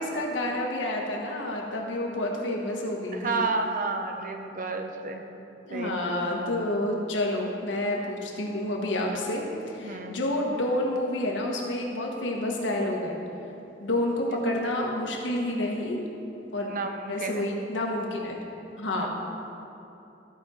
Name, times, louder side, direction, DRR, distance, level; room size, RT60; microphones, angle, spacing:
voice 1, 0.0-3.5 5.6-13.2 13.8-16.0 16.5-16.7 17.1-18.4 18.8-19.1, left 1 dB, 85° left, 0 dB, 1.4 m, -29 dB
voice 2, 3.2-5.2 5.7-6.2 9.8-10.2 16.6-17.4 18.9-19.1, right 3 dB, 45° right, 5 dB, 0.7 m, -31 dB
14.5 x 5.1 x 4.2 m, 2.9 s
head